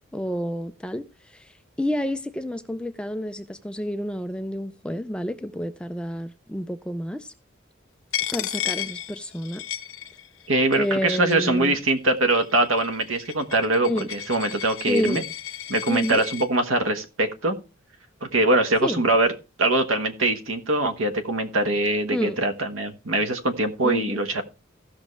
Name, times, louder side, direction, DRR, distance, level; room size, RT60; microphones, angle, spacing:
voice 1, 0.1-7.3 8.3-9.8 10.7-11.8 13.8-14.1 14.9-15.2 15.9-16.2 18.8-19.0 22.1-22.4 23.8-24.2, left 1 dB, 5° left, 0.4 m, -29 dB
Coin (dropping), 8.1-10.5 10.7-11.5 12.2-16.5, left 12 dB, 75° left, 0.7 m, -34 dB
voice 2, 10.5-15.2 15.7-17.6 18.2-19.3 19.6-24.4, right 2 dB, 80° right, 1.3 m, -23 dB
16.0 x 6.1 x 3.2 m
head